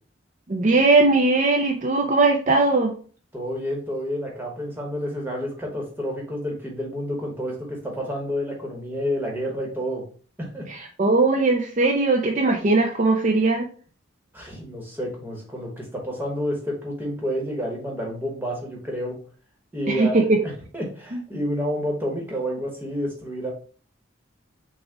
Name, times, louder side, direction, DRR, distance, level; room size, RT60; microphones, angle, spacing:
voice 1, 0.5-2.9 10.7-13.7 19.9-20.4 21.1-21.2, right 3 dB, 40° right, 1 dB, 0.5 m, -19 dB
voice 2, 3.3-10.0 10.4-10.7 14.3-19.2 19.7-23.5, equal, 10° right, -2 dB, 1.3 m, -29 dB
6.2 x 2.4 x 3.5 m, 0.41 s
head